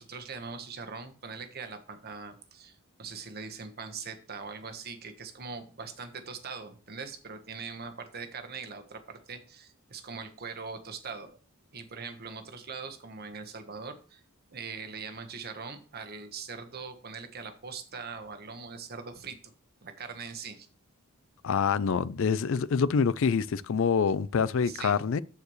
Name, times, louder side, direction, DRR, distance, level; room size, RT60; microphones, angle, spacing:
voice 1, 0.0-11.4 11.7-14.2 14.5-19.5 19.8-20.7 24.6-25.0, right 5 dB, 45° right, 1.2 m, -41 dB
voice 2, 21.4-25.2, left 6 dB, 65° left, 0.4 m, -26 dB
13.5 x 4.7 x 3.2 m
head